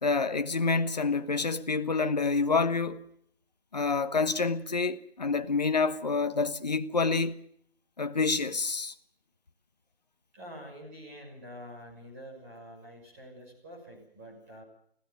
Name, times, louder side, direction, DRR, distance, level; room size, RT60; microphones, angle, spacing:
voice 1, 0.0-3.0 3.7-7.4 8.0-8.9, left 4 dB, 40° left, 1.3 m, -28 dB
voice 2, 10.3-14.6, equal, 15° right, 6.2 m, -47 dB
21.5 x 16.5 x 9.3 m
figure-of-eight pair, 175°, 31 cm